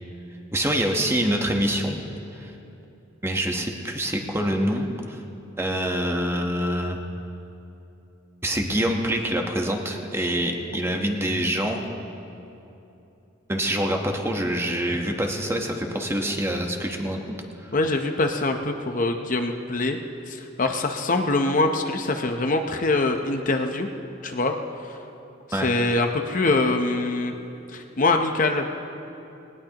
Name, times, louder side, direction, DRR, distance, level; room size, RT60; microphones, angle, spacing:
voice 1, 0.5-2.0 2.3-2.5 3.2-5.2 5.6-7.0 8.4-11.8 13.5-17.2 17.6-17.7 25.5-25.7, equal, 15° right, 2 dB, 1.1 m, -25 dB
voice 2, 17.7-20.0 20.3-23.9 24.2-24.5 24.8-25.0 25.5-27.3 27.7-28.7, left 2 dB, 40° left, 4 dB, 0.7 m, -24 dB
19.5 x 19.0 x 2.9 m, 2.8 s
head